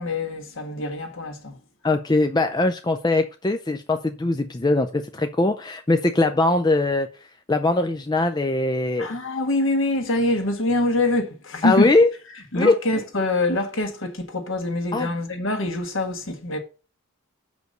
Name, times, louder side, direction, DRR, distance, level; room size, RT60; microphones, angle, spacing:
voice 1, 0.0-1.6 9.0-11.9 12.5-16.6, left 2 dB, 60° left, 1.6 m, -25 dB
voice 2, 1.8-7.1 7.5-9.1 11.6-12.1 12.6-12.7 14.9-15.1, left 2 dB, 20° left, 0.4 m, -21 dB
6.6 x 5.1 x 6.4 m
head